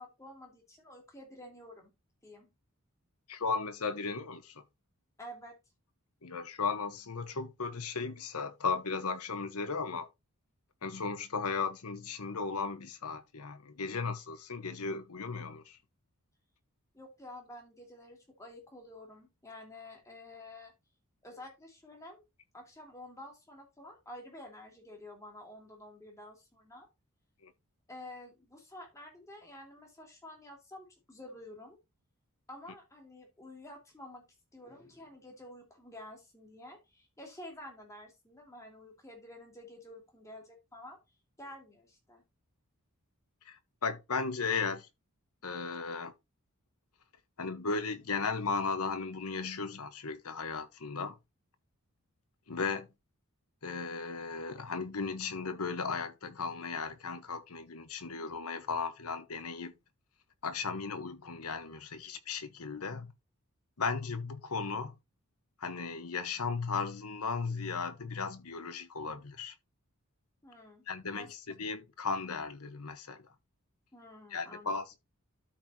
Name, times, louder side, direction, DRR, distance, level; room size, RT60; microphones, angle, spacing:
voice 1, 0.0-1.9 2.2-2.5 5.2-5.6 16.9-20.7 21.2-22.2 22.5-26.9 27.9-31.8 32.5-34.3 34.5-41.0 41.4-42.2 70.4-71.3 73.9-74.8, left 1 dB, 15° left, 2.8 m, -50 dB
voice 2, 3.3-4.6 6.2-10.1 10.8-15.8 27.4-27.5 43.5-44.9 45.4-46.1 47.4-51.2 52.5-52.9 53.6-59.7 60.4-63.1 63.8-64.9 65.6-69.5 70.9-73.2 74.3-75.0, left 4 dB, 80° left, 1.2 m, -36 dB
13.0 x 4.6 x 2.8 m
head